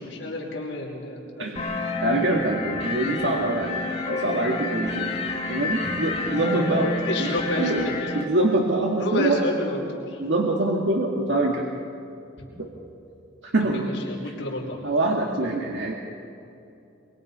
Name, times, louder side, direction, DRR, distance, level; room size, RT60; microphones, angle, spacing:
voice 1, 0.0-1.6 6.3-8.1 9.0-10.2 13.7-14.9, left 1 dB, 85° left, -2 dB, 5.1 m, -30 dB
sound 1, 1.6-8.2, left 2 dB, 35° left, 3.0 m, -29 dB
voice 2, 2.0-5.1 5.5-6.9 7.2-7.9 8.1-9.4 10.2-11.7 12.6-12.7 13.5-13.9 14.8-15.9, right 2 dB, 75° right, -1 dB, 1.9 m, -24 dB
24.0 x 24.0 x 5.6 m, 2.7 s
head